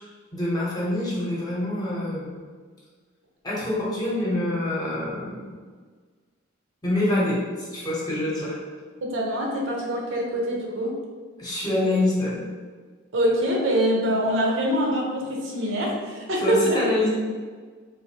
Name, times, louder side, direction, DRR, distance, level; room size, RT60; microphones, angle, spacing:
voice 1, 0.3-2.3 3.4-5.5 6.8-8.6 11.4-12.4 16.4-17.1, left 1 dB, 20° left, -6 dB, 0.9 m, -26 dB
voice 2, 9.0-11.0 13.1-16.8, equal, 65° right, -2 dB, 0.7 m, -24 dB
3.7 x 2.5 x 2.8 m, 1.5 s
head